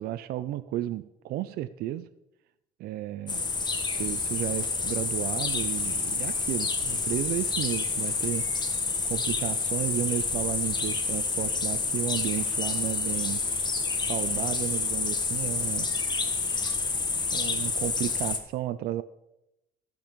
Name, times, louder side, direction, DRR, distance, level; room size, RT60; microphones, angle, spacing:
voice 1, 0.0-2.1 2.8-3.5 3.9-8.5 9.1-13.4 14.1-15.9 17.3-19.0, right 13 dB, 70° right, 13 dB, 0.4 m, -33 dB
sound 1, 3.3-18.4, left 4 dB, 25° left, 1.0 m, -29 dB
13.5 x 5.3 x 5.1 m, 0.89 s
cardioid pair, 125°, 16 cm